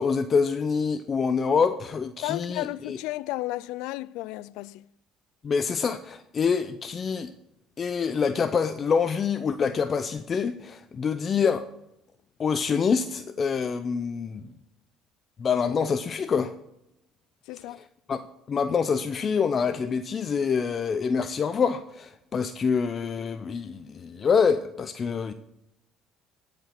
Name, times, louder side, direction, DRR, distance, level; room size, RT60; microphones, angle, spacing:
voice 1, 0.0-3.0 5.4-7.3 7.8-11.7 12.4-14.4 15.4-16.5 17.8-17.9 18.1-25.3, left 6 dB, 40° left, 0.6 m, -26 dB
voice 2, 2.2-4.8 17.5-17.8, left 18 dB, 80° left, 0.3 m, -33 dB
14.5 x 5.1 x 5.9 m
supercardioid pair, 85°, 0 cm